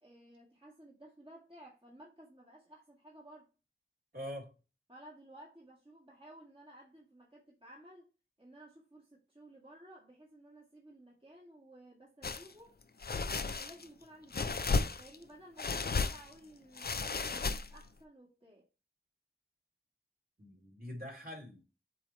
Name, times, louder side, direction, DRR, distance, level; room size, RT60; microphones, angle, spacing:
voice 1, 0.0-3.5 4.9-8.1 8.4-12.8 13.3-14.7 15.0-18.7, right 1 dB, 25° right, 1.9 m, -56 dB
voice 2, 4.1-4.5 20.4-21.6, equal, 45° right, 2.7 m, -44 dB
sound 1, 12.2-12.5 13.0-13.9 14.3-15.2 15.6-16.3 16.8-17.9, left 4 dB, 50° left, 0.5 m, -34 dB
7.7 x 3.0 x 4.1 m
wide cardioid pair, 50°, 20 cm